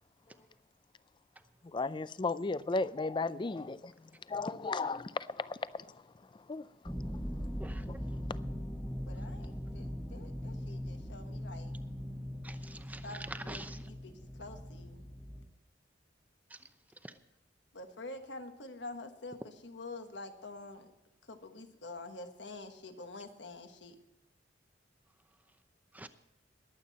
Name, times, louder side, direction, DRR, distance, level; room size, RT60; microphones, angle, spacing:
voice 1, 1.7-3.9 4.3-5.8 6.5-6.6 7.9-8.0, left 3 dB, 25° left, 0.4 m, -34 dB
sound 1, 6.8-15.5, equal, 5° left, 1.2 m, -40 dB
voice 2, 7.6-8.0 12.4-13.9 16.5-16.7 17.0-17.1 25.9-26.1, right 2 dB, 10° right, 0.7 m, -46 dB
voice 3, 9.1-11.7 13.0-14.1 14.4-15.0 17.7-20.9 21.3-24.0, left 2 dB, 70° left, 1.4 m, -47 dB
21.5 x 8.5 x 4.2 m
head